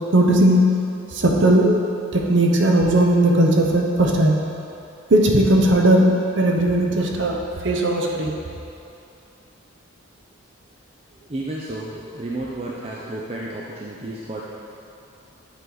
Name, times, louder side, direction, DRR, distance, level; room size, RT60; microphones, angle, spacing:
voice 1, 0.1-0.6 1.1-1.8 2.1-4.4 5.1-8.3, right 1 dB, 60° right, 1 dB, 0.7 m, -17 dB
voice 2, 11.2-14.4, right 1 dB, 30° right, -4 dB, 0.5 m, -32 dB
8.4 x 4.7 x 3.9 m, 2.7 s
head